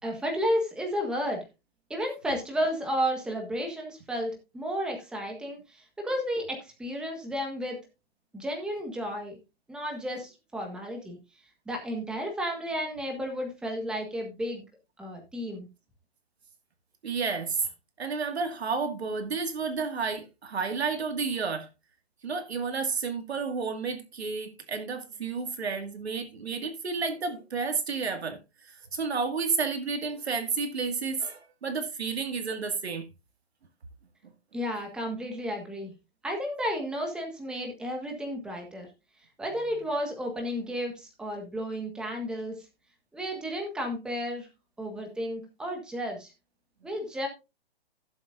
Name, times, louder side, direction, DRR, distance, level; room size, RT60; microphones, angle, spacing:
voice 1, 0.0-1.4 1.9-7.8 8.3-9.3 9.7-11.2 11.6-14.6 15.0-15.7 34.5-35.9 36.2-38.9 39.4-42.6 43.1-44.5 44.8-46.3 46.8-47.3, equal, 5° right, 1.6 m, -32 dB
voice 2, 17.0-17.6 18.0-21.7 22.2-28.4 28.7-33.1, right 5 dB, 85° right, 2.2 m, -31 dB
16.5 x 7.3 x 2.6 m
hypercardioid pair, 160°, 31 cm